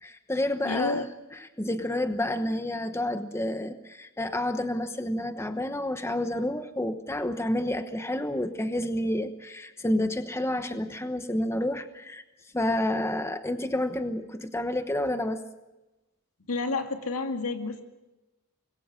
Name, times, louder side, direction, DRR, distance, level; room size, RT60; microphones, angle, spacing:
voice 1, 0.0-12.2 12.5-15.4, left 1 dB, 10° left, 8 dB, 1.1 m, -29 dB
voice 2, 0.6-1.1 16.5-17.8, left 3 dB, 80° left, 5 dB, 2.4 m, -30 dB
25.5 x 21.5 x 6.5 m, 1.0 s
head